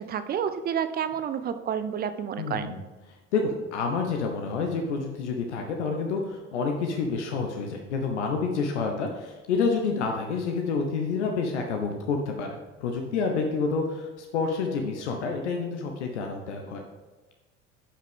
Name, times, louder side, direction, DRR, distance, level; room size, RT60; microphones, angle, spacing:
voice 1, 0.0-2.7, right 8 dB, 25° right, 10 dB, 0.6 m, -30 dB
voice 2, 2.4-2.8 3.3-16.8, left 4 dB, 70° left, 3 dB, 0.9 m, -28 dB
9.9 x 5.7 x 3.7 m, 1.2 s
figure-of-eight pair, 60°, 36 cm